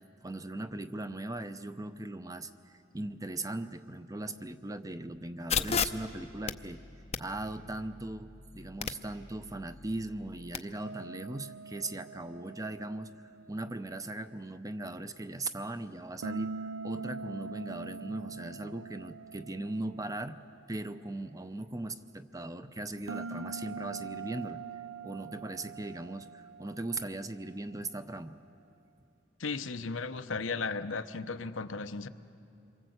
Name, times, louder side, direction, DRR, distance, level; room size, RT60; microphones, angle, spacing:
voice 1, 0.2-6.8 7.2-13.1 13.5-20.4 20.7-24.6 25.0-28.4, right 2 dB, 20° right, 10 dB, 0.6 m, -39 dB
sound 1, 5.5-10.6, left 7 dB, 35° left, 0.6 m, -36 dB
sound 2, 10.8-13.9 16.2-20.7 23.1-27.6, right 4 dB, 70° right, 0.5 m, -43 dB
voice 2, 29.4-32.1, left 4 dB, 80° left, 9 dB, 0.9 m, -35 dB
27.0 x 23.5 x 8.0 m, 2.6 s
head